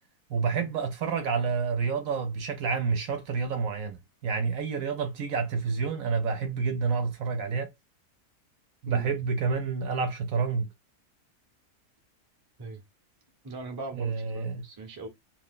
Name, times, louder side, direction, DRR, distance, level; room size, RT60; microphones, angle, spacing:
voice 1, 0.3-7.7 8.8-10.7 14.0-14.6, right 5 dB, 70° right, 0.9 m, -29 dB
voice 2, 13.4-15.1, right 3 dB, 25° right, 0.5 m, -40 dB
2.7 x 2.3 x 3.5 m
omnidirectional pair, 1.7 m